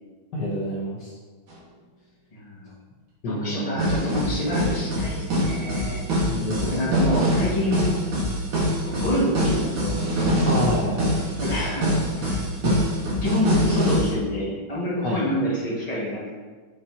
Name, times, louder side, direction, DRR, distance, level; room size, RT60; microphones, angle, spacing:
voice 1, 0.3-1.1 3.2-3.8 6.3-6.8 10.4-11.3 12.6-12.9 15.0-15.2, left 1 dB, 60° left, -5 dB, 1.5 m, -28 dB
sound 1, 1.5-1.6 3.8-14.1, equal, 65° right, 2.3 m, -24 dB
voice 2, 2.3-2.7 3.2-6.0 6.6-7.9 9.0-10.0 11.4-12.4 13.2-16.4, left 1 dB, 20° left, -6 dB, 1.7 m, -27 dB
7.1 x 7.0 x 2.9 m, 1.4 s
omnidirectional pair, 2.3 m